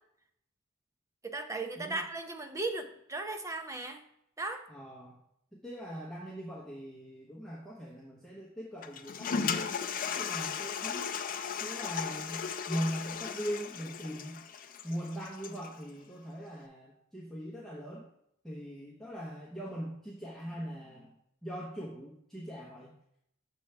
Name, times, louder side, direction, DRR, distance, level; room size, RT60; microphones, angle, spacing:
voice 1, 1.2-4.0 4.4-4.7, right 2 dB, 15° right, 6 dB, 0.5 m, -36 dB
voice 2, 4.7-5.2 5.6-9.8 10.2-11.1 11.6-14.4 14.8-18.0 18.4-23.0, equal, ahead, -6 dB, 1.0 m, -40 dB
Toilet flush, 8.8-15.7, left 7 dB, 45° left, 0.4 m, -36 dB
7.2 x 3.4 x 5.7 m, 0.76 s
head